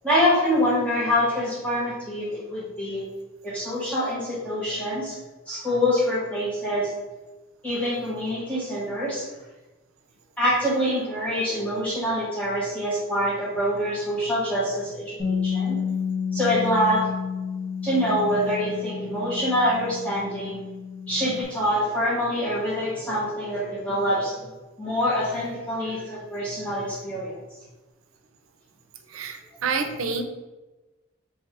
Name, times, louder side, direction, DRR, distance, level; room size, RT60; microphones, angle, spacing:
voice 1, 0.0-3.0 3.4-5.2 5.5-6.9 7.6-9.3 10.4-15.8 16.3-17.1 17.8-20.6 21.1-24.5 24.8-27.4 29.9-30.0, equal, 5° left, -8 dB, 1.1 m, -25 dB
Bass guitar, 15.2-21.4, left 6 dB, 35° left, 1.4 m, -30 dB
voice 2, 29.1-30.2, right 4 dB, 90° right, 6 dB, 0.6 m, -28 dB
3.3 x 3.3 x 4.5 m, 1.1 s
head